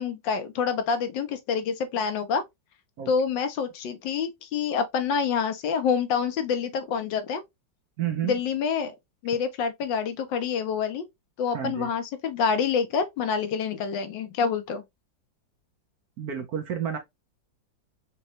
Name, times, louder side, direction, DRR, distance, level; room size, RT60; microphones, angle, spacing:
voice 1, 0.0-2.4 3.1-7.4 8.2-8.9 9.2-11.1 11.4-14.8, left 6 dB, 75° left, 1.4 m, -27 dB
voice 2, 8.0-8.4 11.5-11.9 16.2-17.0, right 9 dB, 60° right, 1.1 m, -30 dB
5.3 x 2.3 x 2.9 m
omnidirectional pair, 2.1 m